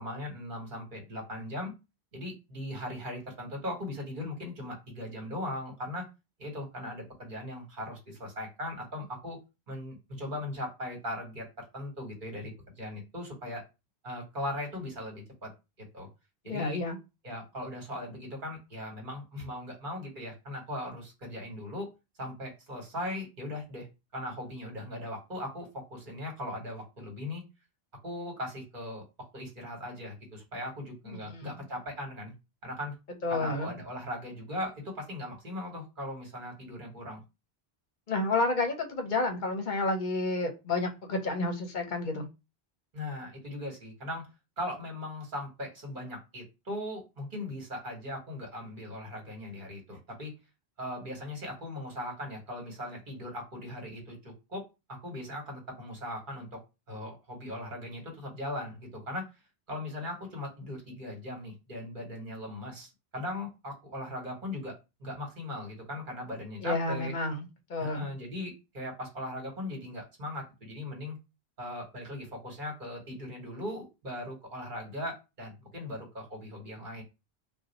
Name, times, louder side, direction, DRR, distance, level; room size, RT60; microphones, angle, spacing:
voice 1, 0.0-1.7 2.1-6.1 6.4-9.4 9.7-11.5 11.7-13.6 14.0-15.5 15.9-16.1 16.4-16.8 17.2-21.9 22.2-23.9 24.1-27.4 28.0-29.0 29.3-32.3 32.6-32.9 33.3-37.2 42.9-44.3 44.6-50.3 50.8-56.6 56.9-59.3 59.7-67.1 67.8-71.2 71.6-77.0, left 1 dB, 50° right, 1 dB, 1.4 m, -39 dB
voice 2, 16.5-17.0 31.1-31.5 33.2-33.7 38.1-42.3 66.6-68.1, left 2 dB, 55° left, 4 dB, 0.7 m, -30 dB
2.6 x 2.2 x 3.9 m, 0.27 s
omnidirectional pair, 1.1 m